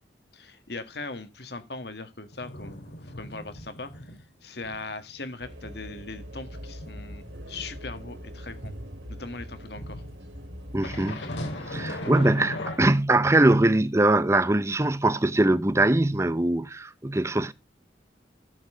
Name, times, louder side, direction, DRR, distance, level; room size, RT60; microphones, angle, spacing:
voice 1, 0.3-8.7 9.1-10.0, left 3 dB, 65° left, 1.8 m, -40 dB
sound 1, 2.3-4.2 4.6-4.8 5.2-8.8 9.8-12.8, left 1 dB, 85° left, 3.4 m, -38 dB
sound 2, 5.4-11.0, equal, 80° right, 2.6 m, -42 dB
voice 2, 10.7-11.2 11.7-17.5, right 2 dB, 15° right, 0.6 m, -22 dB
13.0 x 7.1 x 3.8 m
head